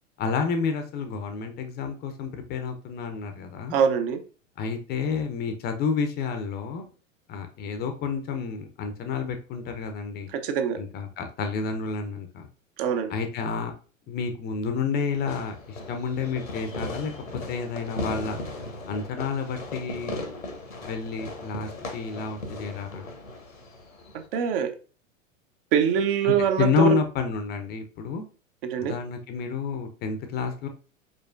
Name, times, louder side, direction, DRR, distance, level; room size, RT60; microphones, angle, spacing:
voice 1, 0.2-3.8 4.6-6.9 7.3-10.3 10.8-12.5 13.1-13.7 14.1-18.4 18.9-20.2 20.8-23.1 26.2-28.2 28.8-30.7, left 5 dB, 25° left, 7 dB, 0.6 m, -30 dB
voice 2, 3.7-4.2 10.3-10.8 12.8-13.1 24.3-24.7 25.7-27.0 28.6-28.9, right 7 dB, 45° right, 7 dB, 0.8 m, -23 dB
Fireworks, 15.2-24.3, left 2 dB, 85° left, 1.2 m, -37 dB
4.9 x 4.3 x 2.5 m, 0.36 s
figure-of-eight pair, 95°, 40 cm